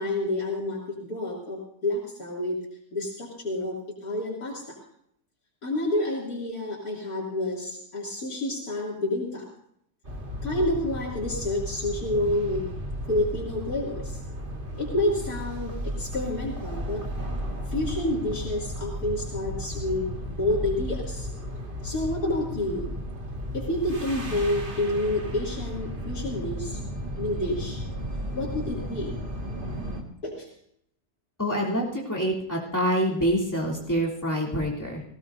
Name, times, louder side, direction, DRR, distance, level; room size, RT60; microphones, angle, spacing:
voice 1, 0.0-2.6 2.9-4.8 5.6-9.4 10.4-12.7 13.1-14.2 14.8-17.0 17.7-20.1 20.4-21.3 21.8-22.9 23.5-26.8 27.2-27.8 28.3-29.2 30.2-30.5, left 1 dB, 75° left, -6 dB, 3.3 m, -29 dB
sound 1, 10.0-30.0, equal, 35° right, 2.1 m, -34 dB
voice 2, 31.4-35.0, equal, 10° left, -4 dB, 3.3 m, -26 dB
18.5 x 17.5 x 2.7 m, 0.70 s
omnidirectional pair, 1.6 m